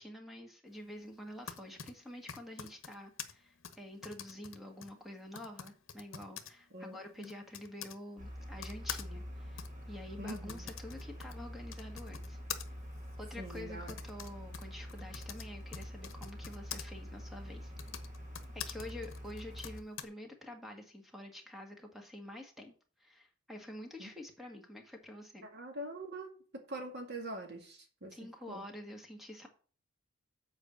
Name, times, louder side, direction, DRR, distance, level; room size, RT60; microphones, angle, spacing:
voice 1, 0.0-12.4 13.2-17.7 18.5-22.7 23.0-25.4 28.1-29.5, left 1 dB, ahead, 2 dB, 1.6 m, -48 dB
Typing, 1.2-8.0 8.6-16.8 17.6-20.0, left 9 dB, 70° left, 1.0 m, -47 dB
voice 2, 6.7-7.3 10.2-10.7 13.4-13.9 24.0-24.1 25.4-28.1 28.5-28.6, right 1 dB, 55° right, 3 dB, 2.1 m, -44 dB
sound 1, 8.2-19.8, equal, 40° right, 1.5 m, -46 dB
8.0 x 4.6 x 7.1 m, 0.40 s
head